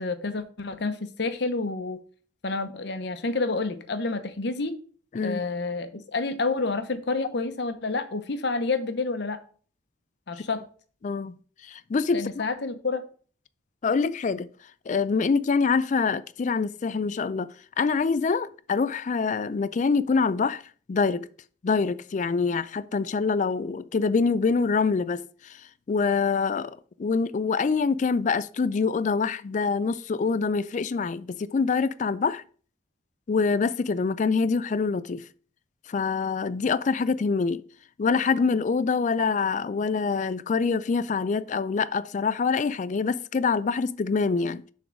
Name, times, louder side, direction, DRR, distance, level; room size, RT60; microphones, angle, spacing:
voice 1, 0.0-2.0 2.4-4.8 5.2-9.4 10.3-10.6 12.1-13.0, left 3 dB, 60° left, 0.8 m, -29 dB
voice 2, 11.0-11.3 11.6-12.2 13.8-14.5 14.9-17.5 17.8-20.6 20.9-21.3 21.6-25.6 25.9-32.4 33.3-35.2 35.9-37.6 38.0-44.6, left 4 dB, 40° left, 0.3 m, -25 dB
6.8 x 3.8 x 6.2 m
head